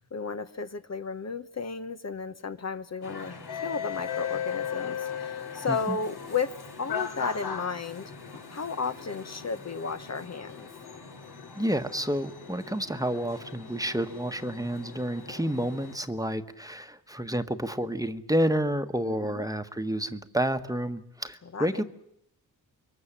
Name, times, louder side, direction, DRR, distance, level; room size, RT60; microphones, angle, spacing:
voice 1, 0.1-8.1 8.5-10.7 19.0-19.5 21.5-21.8, left 5 dB, 45° left, 1.0 m, -34 dB
sound 1, 3.0-16.0, left 7 dB, 75° left, 2.8 m, -38 dB
voice 2, 11.5-21.8, right 1 dB, 10° right, 1.3 m, -30 dB
25.5 x 22.5 x 7.4 m
cardioid pair, 75°, 38 cm